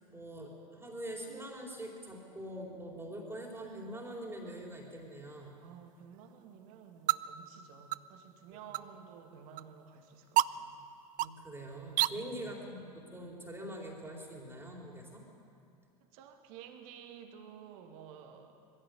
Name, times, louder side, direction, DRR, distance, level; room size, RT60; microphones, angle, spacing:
voice 1, 0.1-5.5 8.8-8.9 11.2-15.2, right 1 dB, 10° right, -1 dB, 4.2 m, -44 dB
sound 1, 3.4-12.1, right 15 dB, 40° right, 0.5 m, -37 dB
voice 2, 5.6-10.8 12.1-12.8 16.0-18.6, right 7 dB, 60° right, 4 dB, 2.3 m, -52 dB
21.0 x 15.5 x 8.0 m, 2.5 s
hypercardioid pair, 85°, 20 cm